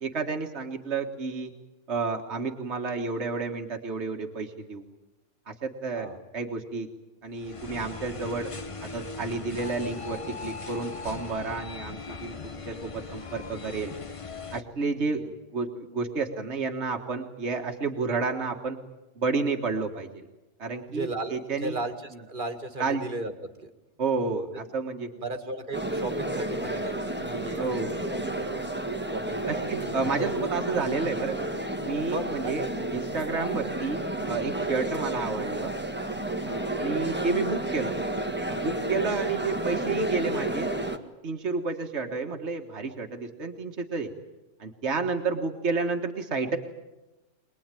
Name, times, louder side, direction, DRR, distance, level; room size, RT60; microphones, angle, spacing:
voice 1, 0.0-1.5 1.9-4.8 5.5-6.9 7.2-8.5 8.9-13.9 14.5-18.8 19.2-20.3 20.6-21.8 22.8-23.0 24.0-25.1 27.6-27.9 29.5-31.5 31.8-32.7 32.9-35.7 36.8-37.9 38.5-40.8 41.2-44.1 44.6-46.6, right 4 dB, 65° right, 3 dB, 1.9 m, -30 dB
sound 1, 7.4-14.6, left 4 dB, 30° left, 1.0 m, -39 dB
voice 2, 14.9-15.3 20.9-23.7 25.2-28.7 29.1-30.3 32.1-32.9 36.5-36.7, right 2 dB, 45° right, 7 dB, 2.0 m, -36 dB
sound 2, 25.7-41.0, right 1 dB, 10° right, 1.6 m, -31 dB
24.0 x 20.5 x 9.1 m, 1.0 s
omnidirectional pair, 1.2 m